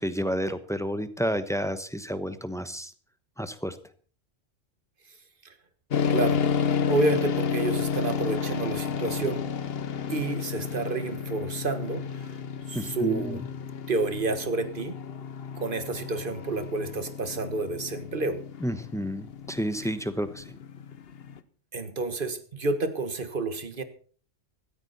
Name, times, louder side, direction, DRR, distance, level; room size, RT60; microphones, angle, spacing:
voice 1, 0.0-2.9 3.4-3.8 12.7-13.4 18.6-20.5, equal, 5° left, 11 dB, 1.0 m, -30 dB
sound 1, 5.9-21.4, left 6 dB, 55° left, 1.1 m, -31 dB
voice 2, 6.1-6.4 6.9-9.5 10.1-12.4 12.7-13.4 13.9-15.0 15.6-18.4 21.7-23.8, right 3 dB, 45° right, 10 dB, 1.7 m, -29 dB
16.0 x 14.0 x 4.2 m, 0.42 s
omnidirectional pair, 1.3 m